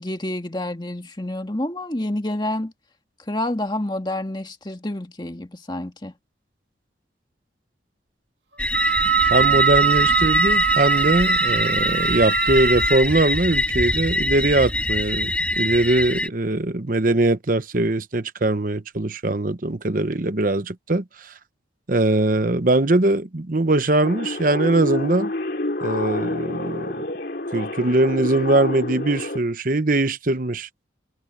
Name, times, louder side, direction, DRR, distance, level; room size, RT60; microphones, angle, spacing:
voice 1, 0.0-2.7 3.3-6.1, left 1 dB, 25° left, 1.9 m, -28 dB
sound 1, 8.6-16.3, left 1 dB, 5° left, 1.6 m, -23 dB
Wind instrument woodwind instrument, 8.7-13.0, right 10 dB, 70° right, 2.4 m, -22 dB
voice 2, 9.3-21.0 21.9-25.3 25.8-27.0 27.5-30.7, right 2 dB, 45° right, 0.9 m, -21 dB
sound 2, 24.0-29.4, left 2 dB, 55° left, 2.7 m, -28 dB
head